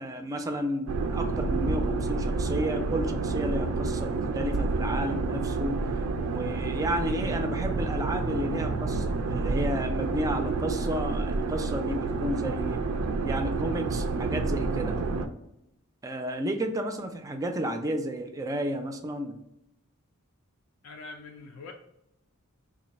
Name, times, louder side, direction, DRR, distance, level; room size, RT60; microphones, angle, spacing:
voice 1, 0.0-5.8 6.2-12.9 13.2-15.0 16.0-19.4, equal, 15° right, 6 dB, 0.3 m, -32 dB
sound 1, 0.9-15.3, right 3 dB, 90° right, 0.4 m, -29 dB
voice 2, 20.8-21.7, left 3 dB, 80° left, 2 dB, 0.4 m, -43 dB
3.1 x 2.5 x 4.0 m, 0.84 s
head